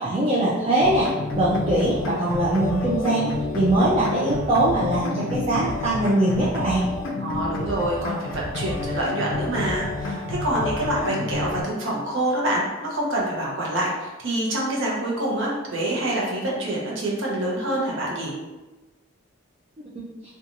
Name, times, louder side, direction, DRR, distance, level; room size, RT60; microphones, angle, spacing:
voice 1, 0.0-1.1 1.4-6.9, right 1 dB, 30° right, -6 dB, 0.4 m, -22 dB
sound 1, 0.8-11.6, left 2 dB, 70° left, 0.4 m, -30 dB
voice 2, 7.2-18.3, right 1 dB, 70° right, -4 dB, 0.7 m, -26 dB
2.6 x 2.3 x 2.7 m, 1.2 s
head